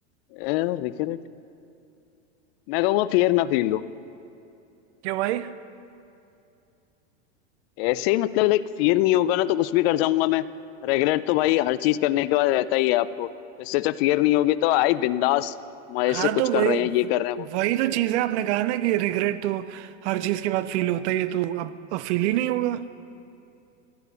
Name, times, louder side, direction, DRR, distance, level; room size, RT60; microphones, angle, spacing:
voice 1, 0.3-1.2 2.7-3.8 7.8-10.4 10.8-13.3 13.6-15.5 15.9-17.5, left 15 dB, 55° left, 0.5 m, -22 dB
voice 2, 5.0-5.6 16.0-16.9 17.5-22.9, right 14 dB, 65° right, 0.7 m, -25 dB
13.0 x 9.3 x 6.8 m
supercardioid pair, 115°, 38 cm